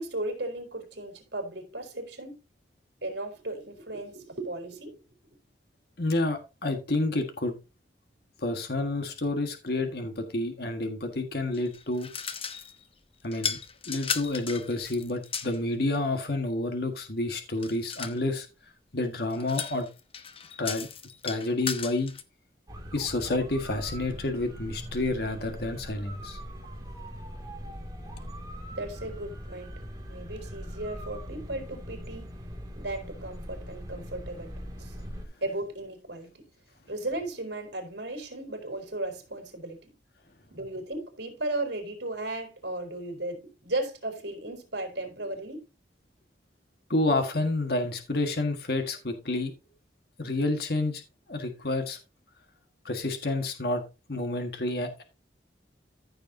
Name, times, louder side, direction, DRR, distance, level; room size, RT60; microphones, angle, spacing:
voice 1, 0.0-2.3 3.0-5.4 28.7-29.8 30.1-32.3 32.8-34.5 34.8-35.0 35.4-36.4 36.9-39.9 40.5-45.7, right 2 dB, 75° right, 3.7 m, -36 dB
voice 2, 6.0-7.5 8.4-12.1 13.2-13.6 13.9-18.5 18.9-19.9 20.6-20.9 21.2-22.1 22.9-26.4 46.9-49.5 50.2-51.0 51.3-52.0 52.8-53.8 54.1-55.0, left 2 dB, 60° left, 1.6 m, -29 dB
sound 1, 11.5-12.8 13.3-15.6 17.6-18.2 19.3-22.2, left 7 dB, 30° left, 0.9 m, -36 dB
sound 2, 22.7-35.2, equal, 20° right, 2.4 m, -41 dB
14.5 x 6.7 x 2.8 m
head